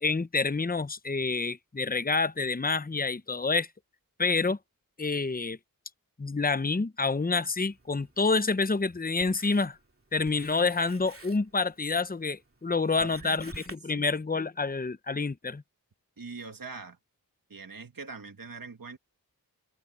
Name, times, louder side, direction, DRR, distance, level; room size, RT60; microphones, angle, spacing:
voice 1, 0.0-3.7 4.2-4.6 5.0-5.6 6.2-9.8 10.1-15.6, left 4 dB, 25° left, 0.8 m, -28 dB
Writing, 7.6-13.8, right 2 dB, 35° right, 2.7 m, -52 dB
voice 2, 13.0-13.4 13.9-14.1 16.2-17.0 17.5-19.0, right 4 dB, 65° right, 1.7 m, -42 dB
wide cardioid pair, 50°, 36 cm